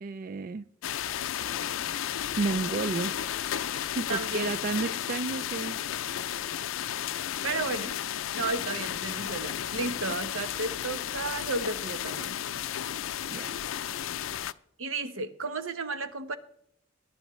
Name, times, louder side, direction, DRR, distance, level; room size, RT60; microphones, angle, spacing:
voice 1, 0.0-0.6 2.4-3.1 3.8-5.8 13.3-13.5, right 3 dB, 45° right, 0.4 m, -31 dB
sound 1, 0.8-14.5, left 10 dB, 80° left, 0.4 m, -33 dB
voice 2, 4.1-4.5 7.4-8.0 8.3-12.6 14.8-16.4, right 3 dB, 85° right, 1.0 m, -33 dB
21.5 x 10.5 x 3.1 m
head